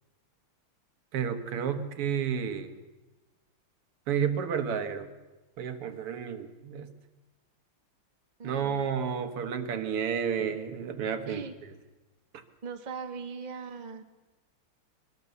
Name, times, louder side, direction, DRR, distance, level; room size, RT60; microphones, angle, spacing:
voice 1, 1.1-2.8 4.1-5.1 5.6-6.9 8.4-11.7, right 7 dB, 90° right, 8 dB, 2.4 m, -31 dB
voice 2, 8.4-8.8 11.2-11.5 12.6-14.0, right 5 dB, 20° right, 6 dB, 1.4 m, -40 dB
22.0 x 22.0 x 6.9 m, 1.1 s
omnidirectional pair, 2.4 m